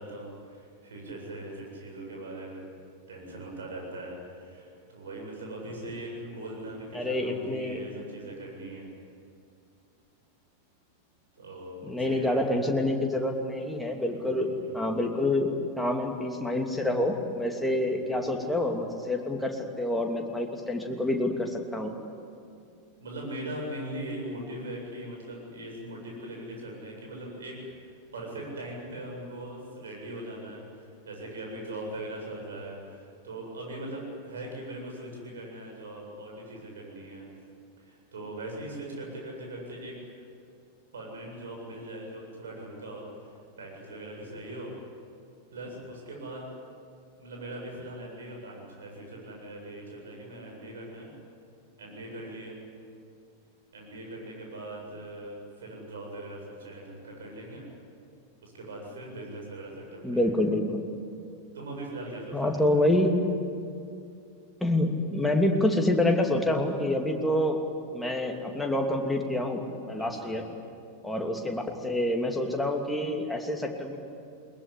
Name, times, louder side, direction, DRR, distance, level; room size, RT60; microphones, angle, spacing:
voice 1, 0.0-2.7 3.1-8.9 11.3-12.4 14.1-14.8 17.9-18.0 23.0-37.3 37.8-40.2 40.9-44.7 45.5-46.6 47.2-51.1 51.8-52.6 53.7-57.7 58.4-60.3 61.5-62.9 70.0-70.4, right 1 dB, 65° right, 0 dB, 7.9 m, -40 dB
voice 2, 6.9-7.8 11.8-21.9 60.0-60.9 62.3-63.1 64.6-67.6 67.9-69.6 69.9-70.4 71.0-74.0, left 1 dB, 5° left, 1 dB, 2.7 m, -27 dB
21.5 x 21.0 x 10.0 m, 2.4 s
figure-of-eight pair, 90°, 0 cm